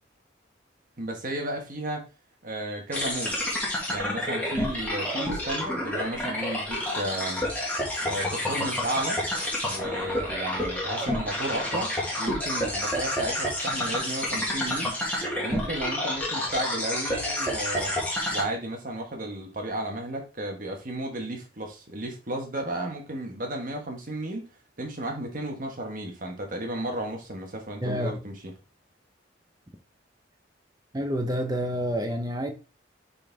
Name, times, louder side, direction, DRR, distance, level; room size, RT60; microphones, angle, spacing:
voice 1, 1.0-2.0 2.4-3.3 3.9-7.4 8.0-9.2 9.6-11.9 12.2-14.9 15.4-17.9 18.3-24.5 24.8-28.5, right 1 dB, 45° right, 1.5 m, -33 dB
sound 1, 2.9-18.4, left 1 dB, 10° left, 1.9 m, -29 dB
voice 2, 27.8-28.2 30.9-32.5, equal, 20° right, 0.9 m, -28 dB
6.7 x 4.1 x 3.5 m
head